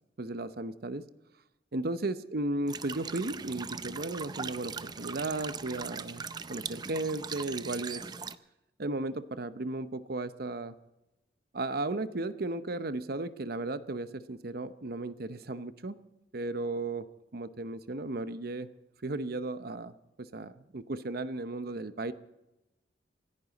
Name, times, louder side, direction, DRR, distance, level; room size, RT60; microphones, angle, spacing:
voice 1, 0.2-1.1 1.7-8.0 8.8-10.7 11.5-16.1 16.3-17.1 17.3-18.7 19.0-22.1, right 2 dB, 55° right, 12 dB, 0.8 m, -35 dB
sound 1, 2.7-8.4, right 5 dB, 25° right, 0.5 m, -40 dB
27.0 x 11.0 x 4.1 m, 0.97 s
head